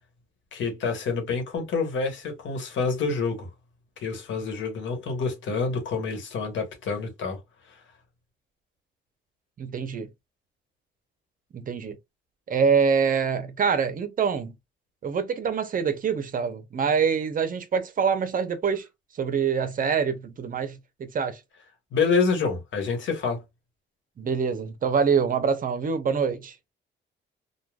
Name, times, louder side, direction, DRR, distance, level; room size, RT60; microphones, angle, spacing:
voice 1, 0.5-3.5 4.0-7.4 21.9-23.4, left 4 dB, 70° left, 1.2 m, -27 dB
voice 2, 9.6-10.1 11.5-12.0 12.5-14.6 15.0-18.8 19.2-21.4 24.2-26.5, right 6 dB, 45° right, 0.7 m, -25 dB
3.2 x 2.2 x 2.3 m
cardioid pair, 90°, 20 cm